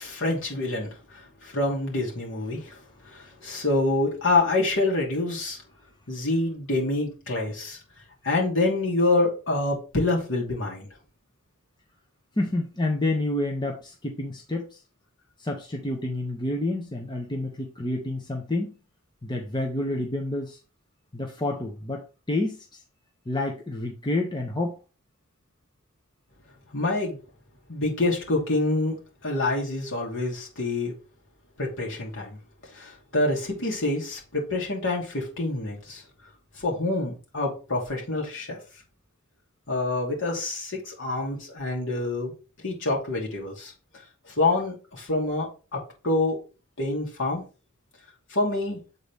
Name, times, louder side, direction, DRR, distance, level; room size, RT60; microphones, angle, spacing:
voice 1, 0.0-2.8 3.1-5.6 6.1-7.8 8.2-10.9 26.7-27.2 27.7-29.0 29.2-30.9 31.6-32.4 32.7-36.0 36.6-38.6 39.7-42.3 42.6-43.7 44.3-45.8 46.0-46.4 46.8-47.4 48.3-48.8, left 2 dB, 60° left, -2 dB, 2.6 m, -26 dB
voice 2, 12.4-14.8 15.4-18.8 19.2-20.6 21.1-22.8 23.3-24.8, left 2 dB, 20° left, 1 dB, 0.9 m, -29 dB
7.6 x 4.1 x 3.5 m, 0.34 s
head